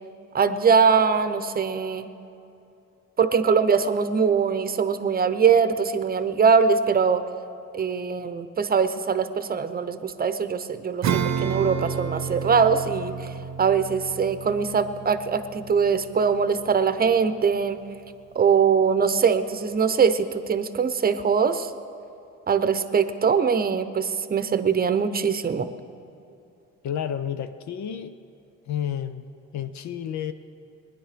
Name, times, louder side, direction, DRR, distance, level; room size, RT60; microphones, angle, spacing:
voice 1, 0.3-2.1 3.2-7.2 7.7-13.3 13.6-17.8 18.3-21.7 22.5-25.7, right 6 dB, 30° right, 11 dB, 0.8 m, -22 dB
Acoustic guitar / Strum, 11.0-17.0, right 7 dB, 60° right, 0.8 m, -31 dB
voice 2, 26.8-28.2 28.7-29.2 29.5-30.3, left 9 dB, 70° left, 10 dB, 0.7 m, -30 dB
20.0 x 10.5 x 5.0 m, 2.7 s
cardioid pair, 90°, 30 cm